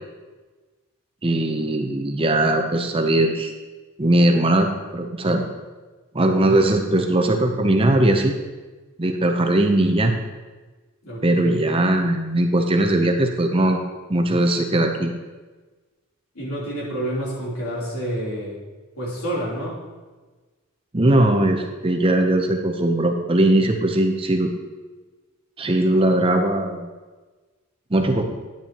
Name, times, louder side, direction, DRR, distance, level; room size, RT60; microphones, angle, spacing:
voice 1, 1.2-3.5 4.0-5.4 6.1-8.3 9.0-10.1 11.2-13.8 14.1-15.1 20.9-24.5 25.6-26.9 27.9-28.3, right 1 dB, 25° right, 4 dB, 0.7 m, -19 dB
voice 2, 11.0-11.7 16.3-18.6 19.0-19.8, right 1 dB, 75° left, -5 dB, 3.3 m, -28 dB
10.0 x 9.7 x 3.0 m, 1.3 s
head